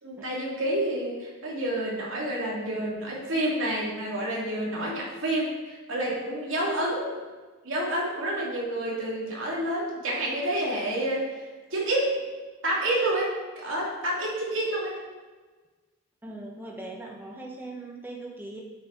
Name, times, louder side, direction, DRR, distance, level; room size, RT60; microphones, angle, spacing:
voice 1, 0.0-7.2 7.6-12.3 12.6-15.0, right 1 dB, 65° right, -4 dB, 2.8 m, -29 dB
voice 2, 16.2-18.6, right 2 dB, 10° right, -1 dB, 1.3 m, -40 dB
8.9 x 8.3 x 4.1 m, 1.3 s
head